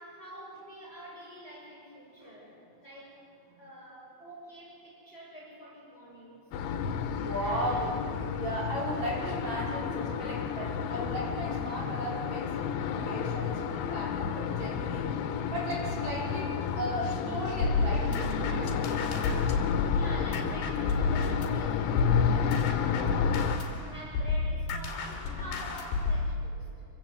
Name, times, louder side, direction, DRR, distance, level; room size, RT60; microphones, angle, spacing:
voice 1, 0.0-3.2 3.6-6.5 7.1-7.9 19.9-26.9, equal, 10° left, -3 dB, 6.2 m, -47 dB
sound 1, 6.5-23.6, left 7 dB, 85° left, 3.6 m, -31 dB
voice 2, 7.1-8.0 8.3-15.1 15.5-18.9, equal, 35° right, -5 dB, 6.8 m, -36 dB
sound 2, 17.6-21.6 22.0-26.3, left 4 dB, 65° left, 4.4 m, -30 dB
28.0 x 25.0 x 8.1 m, 2.4 s
omnidirectional pair, 5.3 m